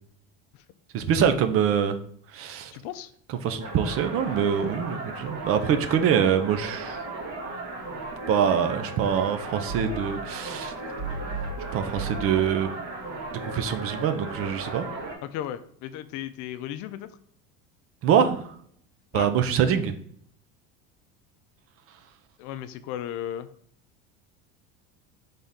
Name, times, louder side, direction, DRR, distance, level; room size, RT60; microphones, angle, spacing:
voice 1, 0.9-2.0 2.3-2.7 3.3-7.0 8.3-10.7 11.7-12.7 13.4-14.9 18.0-18.5 19.1-19.9, right 8 dB, 45° right, 9 dB, 0.5 m, -24 dB
voice 2, 2.7-3.1 15.2-17.1 19.1-19.3 22.4-23.5, left 11 dB, 60° left, 12 dB, 0.5 m, -35 dB
sound 1, 3.6-15.2, right 2 dB, 65° right, 1.7 m, -35 dB
4.0 x 3.5 x 3.6 m, 0.63 s
supercardioid pair, 130°, 34 cm